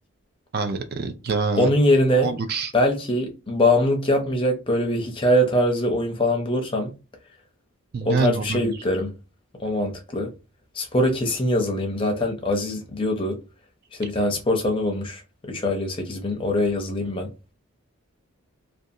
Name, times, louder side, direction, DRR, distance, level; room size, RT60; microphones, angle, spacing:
voice 1, 0.5-1.7 2.2-2.7 7.9-8.7, right 4 dB, 45° right, 0.3 m, -25 dB
voice 2, 1.6-2.3 2.7-6.9 8.0-9.1 9.6-10.3 10.7-13.4 13.9-15.2 15.5-17.3, left 1 dB, 25° left, 0.5 m, -22 dB
2.5 x 2.3 x 2.6 m
head